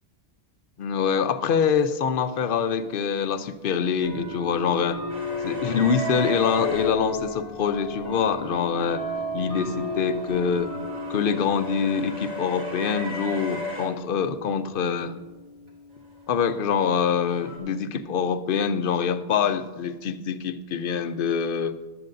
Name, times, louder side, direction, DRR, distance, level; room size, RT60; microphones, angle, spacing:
voice 1, 0.8-5.0 5.4-9.0 9.3-10.7 11.1-15.1 16.3-21.8, left 6 dB, 60° left, 11 dB, 0.7 m, -25 dB
sound 1, 1.8-1.9 3.0-3.1 4.0-17.2, left 2 dB, 25° right, 2.1 m, -34 dB
sound 2, 5.1-6.9 9.3-13.9 16.3-17.6, left 1 dB, 70° right, 2.5 m, -36 dB
15.0 x 11.5 x 2.6 m, 1.2 s
omnidirectional pair, 1.1 m